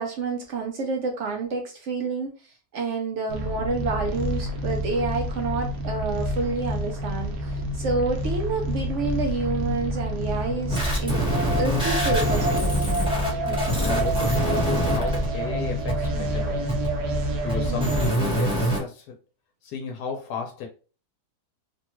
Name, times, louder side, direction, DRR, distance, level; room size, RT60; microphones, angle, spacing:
voice 1, 0.0-11.2 11.6-12.7 17.7-17.9, right 4 dB, 65° right, 0.8 m, -29 dB
sound 1, 3.3-18.1, equal, 90° right, 1.3 m, -28 dB
voice 2, 10.3-10.6 13.4-16.7 17.4-19.1 19.6-20.7, left 6 dB, 85° left, 1.2 m, -34 dB
sound 2, 10.7-15.2 15.9-16.1 16.7-16.9 17.5-18.8, equal, 5° right, 0.8 m, -25 dB
3.3 x 2.2 x 2.9 m
omnidirectional pair, 1.7 m